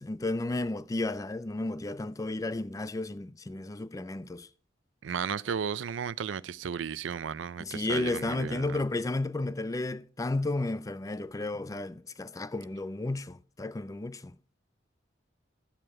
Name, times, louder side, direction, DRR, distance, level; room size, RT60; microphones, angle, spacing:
voice 1, 0.0-4.5 7.6-14.3, left 2 dB, 20° left, 0.4 m, -33 dB
voice 2, 5.0-8.8, right 7 dB, 90° right, 0.4 m, -34 dB
13.0 x 7.7 x 4.8 m
head